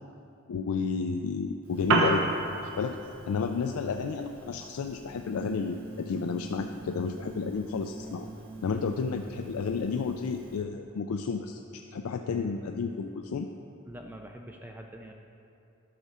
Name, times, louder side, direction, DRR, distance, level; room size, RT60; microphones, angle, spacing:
voice 1, 0.5-2.3 2.6-3.0 3.3-8.3 8.6-11.6 11.9-13.5, left 5 dB, 80° left, 4 dB, 0.4 m, -31 dB
Piano, 1.6-10.6, right 3 dB, 70° right, 1.0 m, -35 dB
sound 1, 5.2-9.9, right 2 dB, 35° right, 0.9 m, -45 dB
voice 2, 13.9-15.1, right 1 dB, 10° right, 2 dB, 0.4 m, -44 dB
11.5 x 6.0 x 4.2 m, 2.7 s
head